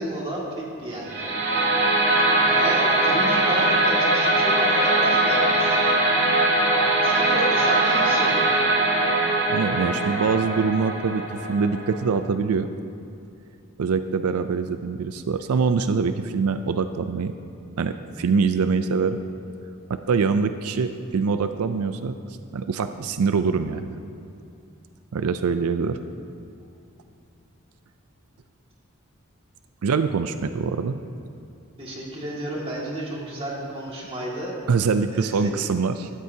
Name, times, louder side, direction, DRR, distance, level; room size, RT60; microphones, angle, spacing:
voice 1, 0.0-1.3 1.6-1.7 2.3-6.0 7.0-8.6 31.8-34.6 35.1-35.7, right 1 dB, 25° right, -4 dB, 2.1 m, -32 dB
sound 1, 1.0-12.1, right 2 dB, 50° right, 2.6 m, -21 dB
voice 2, 9.5-12.7 13.8-17.3 17.8-19.2 19.9-22.2 22.5-24.0 25.1-26.0 29.8-31.0 34.7-36.1, right 5 dB, 90° right, 10 dB, 0.4 m, -24 dB
16.0 x 13.0 x 2.8 m, 2.5 s
head